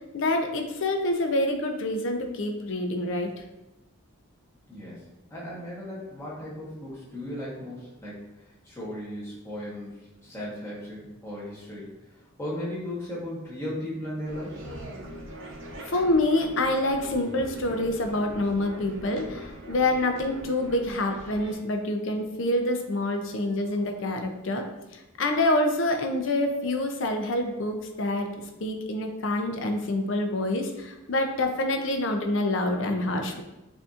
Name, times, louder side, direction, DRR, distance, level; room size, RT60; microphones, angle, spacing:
voice 1, 0.1-3.3 15.9-24.6 24.9-28.3 28.6-33.4, left 1 dB, 60° left, 5 dB, 0.6 m, -26 dB
voice 2, 4.7-14.6, left 1 dB, 10° left, -7 dB, 1.2 m, -37 dB
sound 1, 14.2-21.6, right 1 dB, 60° right, 0.7 m, -41 dB
6.8 x 2.7 x 2.5 m, 0.97 s
head